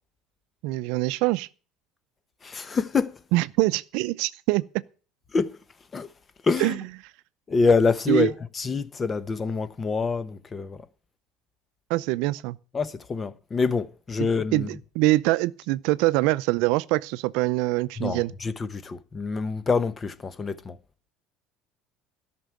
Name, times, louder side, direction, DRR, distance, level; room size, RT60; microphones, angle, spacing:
voice 1, 0.6-1.5 3.3-4.7 6.6-6.8 8.1-8.3 11.9-12.6 14.2-18.3, right 19 dB, 75° right, 0.5 m, -24 dB
voice 2, 2.4-3.2 5.3-5.6 5.9-6.1 6.4-6.8 7.5-10.9 12.7-14.7 18.0-20.8, left 4 dB, 25° left, 1.0 m, -26 dB
13.0 x 6.1 x 9.3 m
cardioid pair, 120°, 0 cm